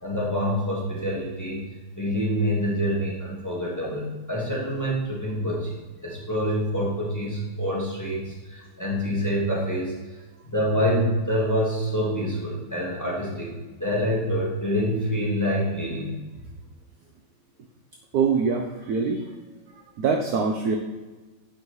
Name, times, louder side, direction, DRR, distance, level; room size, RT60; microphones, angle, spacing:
voice 1, 0.0-1.6 2.0-5.7 6.0-9.9 10.5-13.5 13.8-16.1, equal, 10° left, -5 dB, 1.4 m, -26 dB
voice 2, 18.1-19.2 20.0-20.8, right 5 dB, 75° right, 3 dB, 0.9 m, -23 dB
8.6 x 5.4 x 3.1 m, 1.2 s
omnidirectional pair, 2.2 m